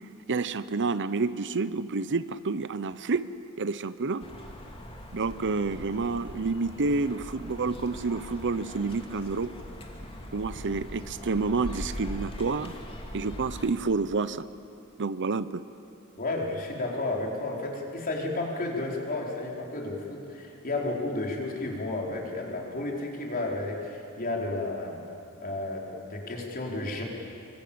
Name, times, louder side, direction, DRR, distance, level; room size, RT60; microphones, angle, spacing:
voice 1, 0.3-3.3 3.6-4.3 5.1-9.5 10.3-12.7 13.1-14.4 15.0-15.6, right 4 dB, 55° right, 14 dB, 0.7 m, -29 dB
sound 1, 4.2-13.7, equal, 25° left, 2.6 m, -41 dB
voice 2, 16.2-25.0 25.4-27.0, left 2 dB, 40° left, -1 dB, 4.4 m, -32 dB
25.5 x 24.0 x 8.7 m, 2.9 s
head